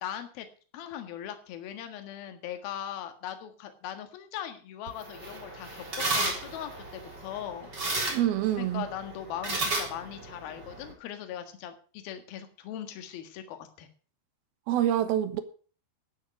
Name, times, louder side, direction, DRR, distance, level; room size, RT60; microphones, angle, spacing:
voice 1, 0.0-0.5 0.7-7.7 8.6-13.9, left 10 dB, 65° left, 3.3 m, -39 dB
sound 1, 4.9-10.9, right 2 dB, 25° right, 3.7 m, -34 dB
voice 2, 8.1-8.9 14.7-15.4, right 12 dB, 70° right, 2.8 m, -26 dB
12.0 x 10.5 x 5.9 m
omnidirectional pair, 5.0 m